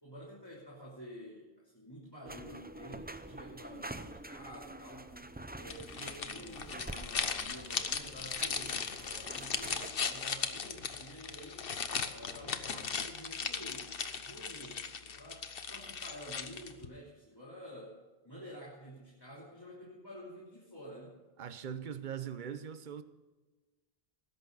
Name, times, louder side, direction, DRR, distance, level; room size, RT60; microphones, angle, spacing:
voice 1, 0.0-5.1 5.5-11.8 12.1-18.0 18.2-21.2, equal, 20° left, 3.2 m, -50 dB
sound 1, 2.2-9.9, right 1 dB, 15° right, 0.4 m, -47 dB
sound 2, 5.7-16.9, left 6 dB, 60° left, 1.2 m, -38 dB
voice 2, 21.4-23.0, right 8 dB, 50° right, 0.9 m, -41 dB
19.5 x 11.0 x 4.0 m
omnidirectional pair, 1.1 m